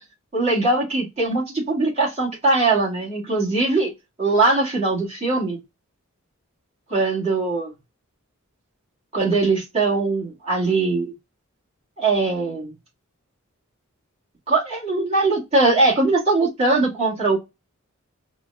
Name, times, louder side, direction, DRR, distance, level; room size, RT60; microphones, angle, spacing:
voice 1, 0.3-3.9 4.2-5.6 6.9-7.7 9.1-11.1 12.0-12.7 14.5-17.4, right 3 dB, 30° right, 2.0 m, -21 dB
4.3 x 2.4 x 2.7 m
head